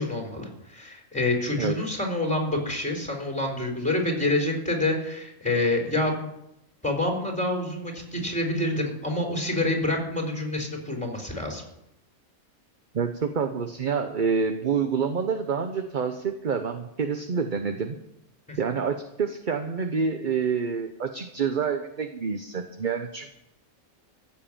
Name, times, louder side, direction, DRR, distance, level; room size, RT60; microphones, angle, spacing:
voice 1, 0.0-6.3 6.8-11.6 18.5-18.6, left 2 dB, 5° left, 1 dB, 3.9 m, -27 dB
voice 2, 12.9-18.0 18.6-23.3, right 6 dB, 40° right, 7 dB, 0.9 m, -27 dB
15.0 x 7.4 x 8.9 m, 0.83 s
omnidirectional pair, 1.5 m